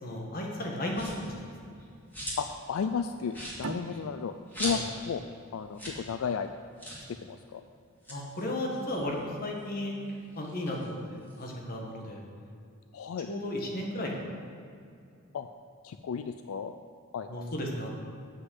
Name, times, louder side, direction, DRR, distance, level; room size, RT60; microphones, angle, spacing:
voice 1, 0.0-1.5 4.6-4.8 8.1-9.9 10.4-12.2 13.3-14.4 17.3-17.9, left 1 dB, 45° left, 0 dB, 1.6 m, -34 dB
sound 1, 0.9-1.3 1.8-2.6 2.9-3.0 3.3-5.1 5.4-5.5 5.7-6.0 6.3-6.4 6.8-7.1 7.9-9.6 10.0-11.5, equal, 10° left, 2.3 m, -40 dB
voice 2, 2.4-4.8 5.1-5.2 5.5-6.5 7.1-7.6 12.9-13.3 15.3-15.5 15.8-16.8 17.1-17.5, left 6 dB, 85° left, 9 dB, 0.4 m, -33 dB
sound 2, 3.6-6.8, right 4 dB, 75° right, 0.6 m, -43 dB
7.6 x 6.2 x 7.8 m, 2.4 s
head